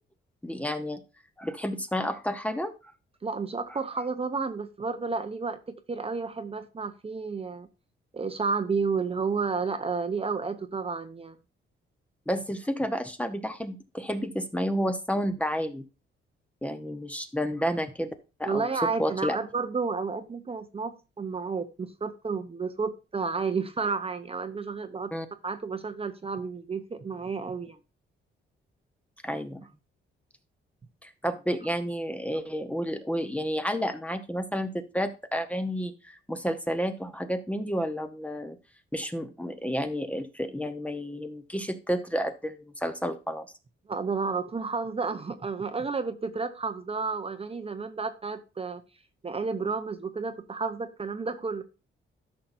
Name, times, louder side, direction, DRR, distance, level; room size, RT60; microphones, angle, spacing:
voice 1, 0.4-1.0 1.4-2.7 12.3-15.8 16.6-18.1 18.4-19.4 25.1-25.3 29.2-29.6 31.0-38.6 38.9-43.5, equal, 5° left, 0.9 m, -31 dB
voice 2, 3.2-7.7 8.1-11.4 18.4-25.1 25.4-27.8 43.9-48.8 49.2-51.6, right 4 dB, 30° right, 0.7 m, -31 dB
13.0 x 5.8 x 2.6 m
cardioid pair, 105°, 21 cm